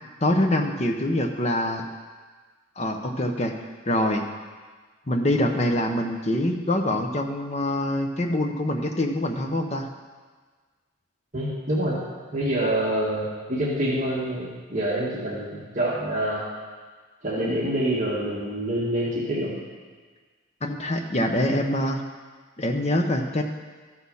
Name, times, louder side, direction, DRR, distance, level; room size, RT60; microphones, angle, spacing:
voice 1, 0.2-1.8 2.8-3.5 3.9-4.2 5.1-9.9 20.6-22.0 22.6-23.4, left 1 dB, 30° left, 4 dB, 0.8 m, -24 dB
voice 2, 11.3-12.0 12.3-16.4 17.2-19.6, right 1 dB, 35° right, -6 dB, 2.0 m, -26 dB
13.5 x 6.4 x 5.6 m, 1.5 s
head